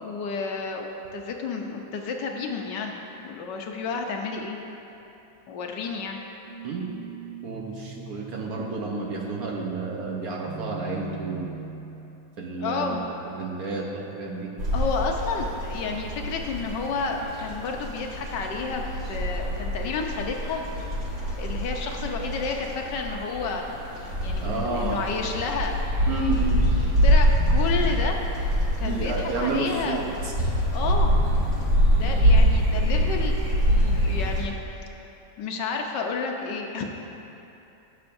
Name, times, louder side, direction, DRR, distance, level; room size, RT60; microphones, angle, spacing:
voice 1, 0.0-4.6 5.5-6.2 12.6-13.0 14.7-20.6 21.4-23.7 24.2-25.8 27.0-28.2 28.8-30.1 30.7-31.1 31.9-33.4 33.7-34.5 35.4-36.8, left 4 dB, 70° left, 2 dB, 1.4 m, -31 dB
sound 1, 6.5-12.4, right 6 dB, 80° right, 1.4 m, -40 dB
voice 2, 7.4-11.6 12.4-14.5 24.4-25.0 26.1-26.8 28.8-30.3, right 3 dB, 60° right, -1 dB, 1.3 m, -31 dB
sound 2, 14.6-34.4, equal, 40° right, 1.9 m, -25 dB
18.5 x 6.6 x 2.6 m, 2.9 s
omnidirectional pair, 2.0 m